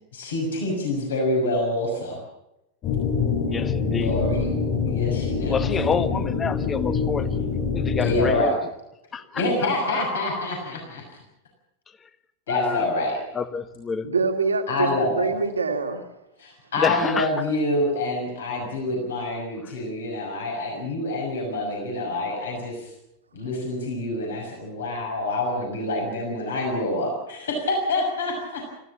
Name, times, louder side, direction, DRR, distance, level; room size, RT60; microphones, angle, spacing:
voice 1, 0.1-2.2 3.9-4.5 4.8-5.6 8.0-8.6 9.3-11.2 12.5-13.2 14.7-15.3 16.4-22.9 23.3-28.7, left 2 dB, 65° left, 1 dB, 6.2 m, -26 dB
sound 1, 2.8-8.3, left 5 dB, 35° left, 5.7 m, -25 dB
voice 2, 3.4-4.2 5.5-7.3 7.7-8.6 9.1-9.4 9.9-10.0 12.5-12.9 13.3-14.1 16.8-17.3, left 5 dB, 20° left, 12 dB, 1.3 m, -28 dB
voice 3, 14.0-16.0, right 4 dB, 75° right, 5 dB, 2.4 m, -25 dB
25.5 x 15.5 x 7.4 m, 0.90 s
figure-of-eight pair, 90°, 0 cm